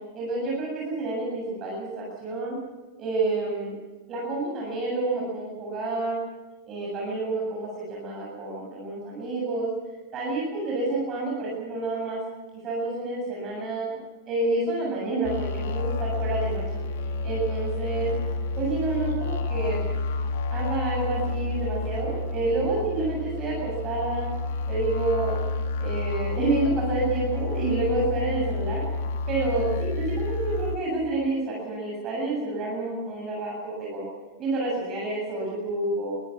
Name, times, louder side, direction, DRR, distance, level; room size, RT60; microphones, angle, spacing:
voice 1, 0.1-2.6 3.0-3.8 4.1-6.2 6.7-9.7 10.1-12.2 12.6-14.0 14.3-16.8 17.2-18.1 18.6-19.9 20.5-24.3 24.7-25.4 25.8-28.8 29.3-34.0 34.4-36.2, right 2 dB, 30° right, -3 dB, 7.9 m, -29 dB
sound 1, 15.2-30.8, left 3 dB, 55° left, 1.7 m, -29 dB
23.0 x 17.0 x 7.3 m, 1.2 s
figure-of-eight pair, 90°, 0 cm